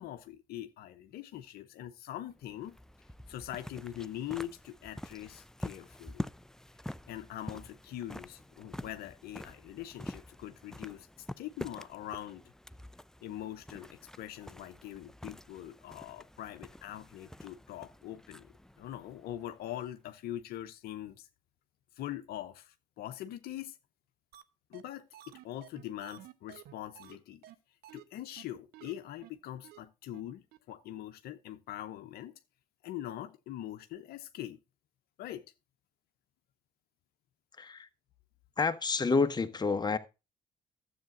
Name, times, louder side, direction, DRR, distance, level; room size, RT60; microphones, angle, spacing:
voice 1, 0.0-2.7 3.3-6.2 7.1-12.4 13.2-21.3 21.9-23.8 24.7-27.4 27.9-32.4 32.8-34.6 35.2-35.5, left 12 dB, 65° left, 0.8 m, -43 dB
sound 1, 2.3-20.0, left 1 dB, 5° left, 0.5 m, -47 dB
sound 2, 24.3-24.4 24.7-24.8 25.1-27.2 27.4-27.5 27.8-28.0 28.4-28.5 28.7-28.9 29.2-29.3 29.6-29.8 30.1-30.2 30.5-30.6, right 12 dB, 70° right, 0.9 m, -52 dB
voice 2, 37.6-37.9 38.6-40.0, left 4 dB, 25° left, 1.1 m, -29 dB
12.5 x 7.9 x 2.5 m
hypercardioid pair, 60°, 17 cm